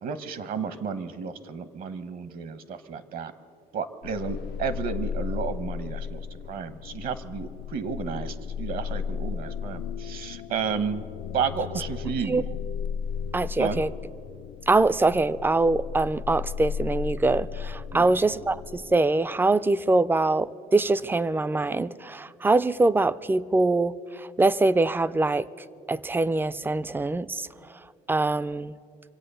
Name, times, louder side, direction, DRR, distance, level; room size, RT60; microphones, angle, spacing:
voice 1, 0.0-3.3 3.7-6.2 6.5-11.1 11.3-12.5 13.6-13.8 17.9-18.1, right 6 dB, 60° right, 13 dB, 1.0 m, -32 dB
sound 1, 4.0-18.9, left 7 dB, 75° left, 0.4 m, -35 dB
voice 2, 13.3-13.9 14.7-25.5 25.9-27.5 28.1-28.7, right 2 dB, 10° right, 17 dB, 0.4 m, -23 dB
25.0 x 8.4 x 6.8 m, 2.5 s
cardioid pair, 110°, 17 cm